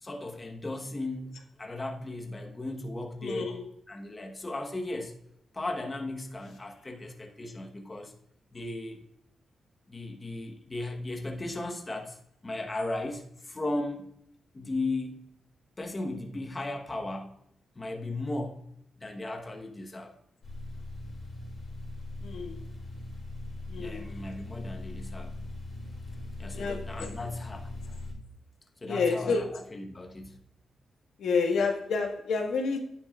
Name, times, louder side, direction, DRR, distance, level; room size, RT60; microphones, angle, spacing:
voice 1, 0.0-3.5 3.9-5.2 5.5-8.1 8.5-9.0 9.9-12.2 12.4-14.1 14.5-15.3 15.8-17.4 17.7-18.6 19.0-20.2 23.8-25.4 26.4-27.7 28.8-30.4, left 2 dB, 20° left, 2 dB, 1.1 m, -36 dB
voice 2, 3.2-3.6 22.2-22.6 23.7-24.0 26.5-27.1 28.8-29.6 31.2-32.8, left 4 dB, 85° left, 2 dB, 1.6 m, -29 dB
sound 1, 20.4-28.1, left 2 dB, 40° left, 3.3 m, -40 dB
10.0 x 9.5 x 2.5 m, 0.73 s
wide cardioid pair, 135°, 0 cm